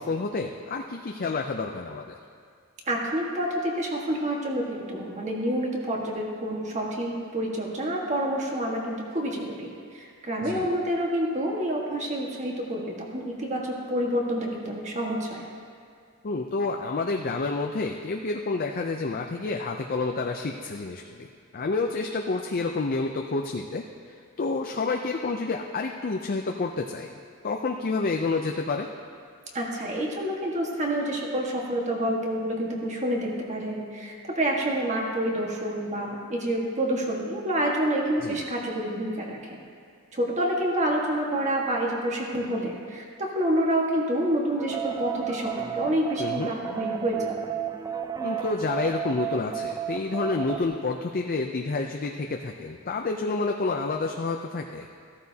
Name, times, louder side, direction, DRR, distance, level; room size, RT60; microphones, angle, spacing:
voice 1, 0.0-2.2 10.4-10.7 16.2-27.1 27.4-28.9 38.2-38.4 46.2-46.5 48.2-54.9, left 3 dB, 40° left, 3 dB, 0.5 m, -29 dB
voice 2, 2.9-9.7 9.9-15.4 29.5-39.6 40.1-47.3, right 1 dB, 30° right, -1 dB, 1.6 m, -28 dB
sound 1, 44.6-50.6, right 9 dB, 15° right, 0.5 m, -32 dB
14.5 x 13.5 x 2.8 m, 2.2 s
head